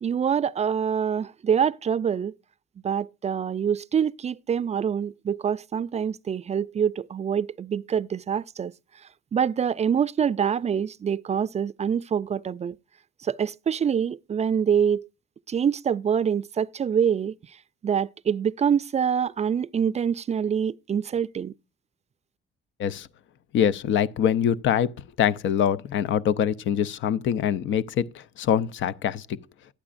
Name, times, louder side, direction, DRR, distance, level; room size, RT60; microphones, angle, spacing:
voice 1, 0.0-2.3 2.8-12.8 13.2-15.1 15.5-21.5, right 7 dB, 35° right, 0.4 m, -25 dB
voice 2, 23.5-24.9 25.2-29.4, left 9 dB, 70° left, 0.6 m, -24 dB
12.0 x 9.6 x 2.5 m
cardioid pair, 90°, 20 cm